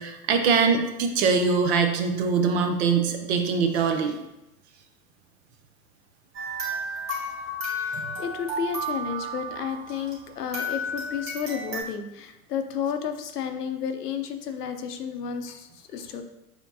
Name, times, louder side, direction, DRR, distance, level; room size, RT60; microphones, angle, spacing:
voice 1, 0.0-4.2 8.1-8.2, right 5 dB, 45° right, 6 dB, 0.7 m, -23 dB
sound 1, 6.3-10.2 10.5-11.8, equal, 25° right, 1.6 m, -32 dB
voice 2, 7.8-16.2, left 7 dB, 75° left, 6 dB, 0.7 m, -32 dB
6.8 x 2.8 x 2.6 m, 0.93 s
figure-of-eight pair, 90°, 47 cm